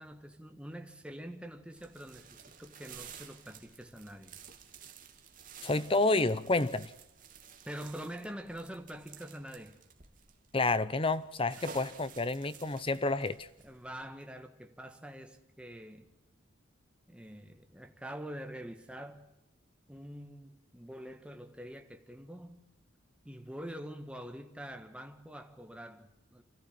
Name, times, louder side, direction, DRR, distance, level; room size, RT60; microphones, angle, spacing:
voice 1, 0.0-4.3 7.6-9.8 13.6-16.1 17.1-19.3 19.9-22.7 23.2-26.4, equal, 5° right, 1.6 m, -45 dB
sound 1, 1.8-14.0, right 7 dB, 45° right, 2.3 m, -53 dB
voice 2, 5.6-6.9 10.5-13.5, left 2 dB, 25° left, 0.8 m, -29 dB
26.5 x 14.5 x 7.4 m
head